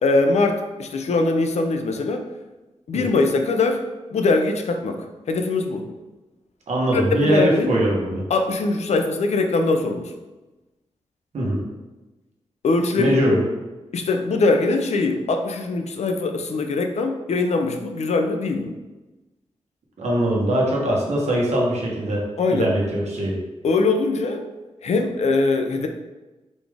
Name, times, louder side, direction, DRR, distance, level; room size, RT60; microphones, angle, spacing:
voice 1, 0.0-2.2 2.9-3.8 4.1-5.9 6.9-7.7 8.3-10.1 12.6-13.2 13.9-18.7 22.4-22.7 23.6-24.4 24.8-25.9, left 3 dB, 75° left, 5 dB, 0.5 m, -22 dB
voice 2, 6.7-8.2 11.3-11.6 13.0-13.4 20.0-23.4, right 1 dB, 80° right, -3 dB, 1.1 m, -22 dB
4.1 x 3.4 x 3.5 m, 1.1 s
wide cardioid pair, 175°, 11 cm